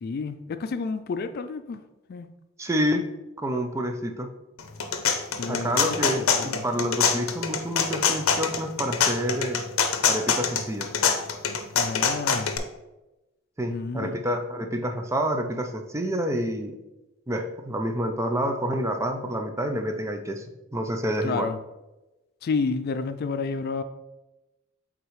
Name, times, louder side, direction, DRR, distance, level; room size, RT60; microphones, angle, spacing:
voice 1, 0.0-1.8 2.1-2.3 5.4-6.6 11.7-12.6 13.7-14.2 21.2-21.6 22.4-23.8, left 4 dB, 50° left, 10 dB, 0.3 m, -30 dB
voice 2, 2.6-3.0 3.4-4.3 5.5-9.6 10.1-10.9 13.6-16.8 17.3-20.4 20.7-21.5, equal, 15° right, 5 dB, 0.5 m, -28 dB
sound 1, 4.6-12.6, left 6 dB, 80° left, 0.6 m, -24 dB
8.2 x 3.6 x 3.1 m, 1.0 s
head